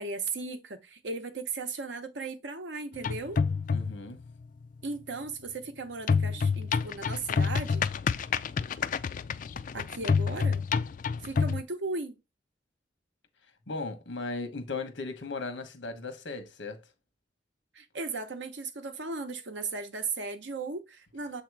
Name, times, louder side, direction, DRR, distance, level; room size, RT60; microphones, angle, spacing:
voice 1, 0.0-3.4 4.8-7.9 9.7-10.6 11.2-12.2 17.7-21.4, right 3 dB, 75° right, 0.9 m, -36 dB
sound 1, 2.9-4.1 6.1-11.6, left 5 dB, 45° left, 0.3 m, -28 dB
voice 2, 3.7-4.2 13.7-16.8, left 3 dB, 75° left, 1.1 m, -37 dB
7.0 x 2.9 x 4.7 m
head